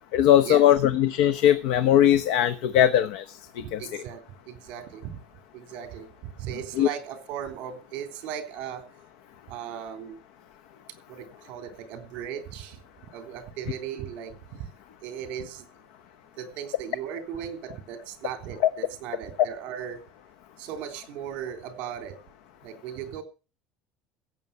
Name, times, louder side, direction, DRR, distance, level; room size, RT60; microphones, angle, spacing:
voice 1, 0.1-4.0 6.7-6.9 18.6-18.7, left 11 dB, 70° left, 11 dB, 0.9 m, -20 dB
voice 2, 3.6-5.2 5.5-8.9 9.5-10.2 11.1-12.8 13.1-14.7 15.0-15.7 16.4-20.0 20.6-22.2 22.6-23.2, right 9 dB, 50° right, 8 dB, 3.3 m, -37 dB
16.0 x 8.0 x 6.9 m, 0.34 s
cardioid pair, 175°, 3 cm